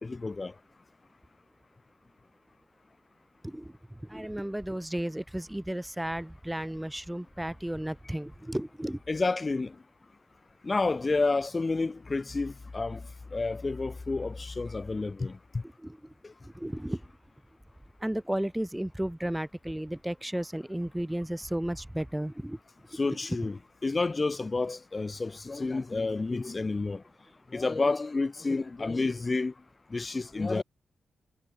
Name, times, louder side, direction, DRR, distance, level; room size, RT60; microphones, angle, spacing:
voice 1, 0.0-0.5 9.1-9.8 10.6-13.0 13.3-15.6 16.2-16.3 22.9-23.6 23.8-27.0 27.5-29.5 29.9-30.6, left 3 dB, 35° left, 1.0 m, -30 dB
voice 2, 3.4-9.0 15.8-16.1 16.4-17.0 18.0-22.6 23.0-23.2, right 1 dB, 5° right, 1.1 m, -34 dB
cardioid pair, 70°, 0 cm